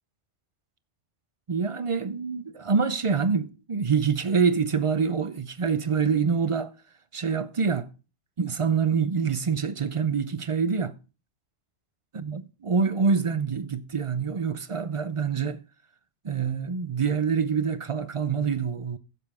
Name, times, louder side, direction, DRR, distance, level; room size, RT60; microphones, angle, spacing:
voice 1, 1.5-6.7 7.1-7.9 8.4-10.9 12.1-15.6 16.2-19.0, right 5 dB, 40° right, 0.4 m, -26 dB
15.5 x 6.9 x 3.5 m
omnidirectional pair, 1.2 m